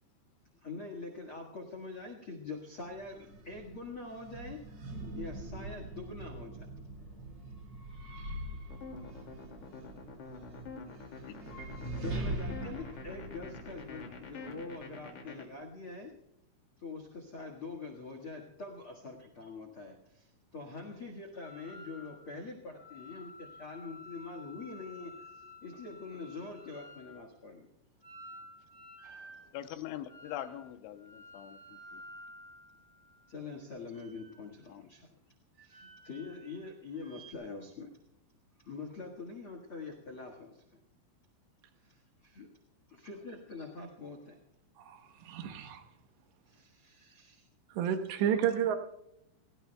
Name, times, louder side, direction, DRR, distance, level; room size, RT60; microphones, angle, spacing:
voice 1, 0.5-7.3 11.6-16.1 16.8-27.7 33.3-35.1 35.5-37.9 38.5-40.8 41.7-42.5 42.9-44.4 46.4-47.5 48.1-48.6, left 3 dB, 65° left, 4 dB, 1.3 m, -45 dB
sound 1, 2.8-14.9, right 2 dB, 50° right, 1.8 m, -43 dB
sound 2, 8.7-15.4, left 4 dB, 45° left, 3.1 m, -46 dB
sound 3, 21.4-22.3 22.7-27.1 28.0-29.4 30.1-30.6 31.0-33.2 33.8-34.7 35.6-36.6 36.9-37.3, left 1 dB, 20° right, 4.3 m, -52 dB
voice 2, 29.5-31.6 31.9-32.0 34.7-34.8, left 12 dB, 80° left, 8 dB, 3.2 m, -42 dB
voice 3, 44.8-45.8 47.7-48.8, right 9 dB, 75° right, 6 dB, 3.2 m, -31 dB
30.0 x 18.5 x 2.3 m, 0.83 s
omnidirectional pair, 5.3 m